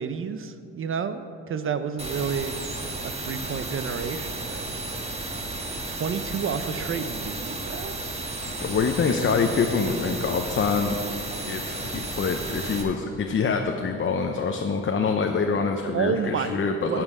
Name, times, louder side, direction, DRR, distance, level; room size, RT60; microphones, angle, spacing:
voice 1, 0.0-2.6 3.0-4.6 5.9-8.0 15.9-16.5 16.9-17.0, right 6 dB, 45° right, 11 dB, 0.6 m, -30 dB
sound 1, 2.0-12.8, right 2 dB, 20° right, 1.4 m, -33 dB
voice 2, 8.4-11.0 11.4-17.0, left 5 dB, 40° left, 3 dB, 0.7 m, -25 dB
11.5 x 7.4 x 4.9 m, 2.5 s
cardioid pair, 90°, 30 cm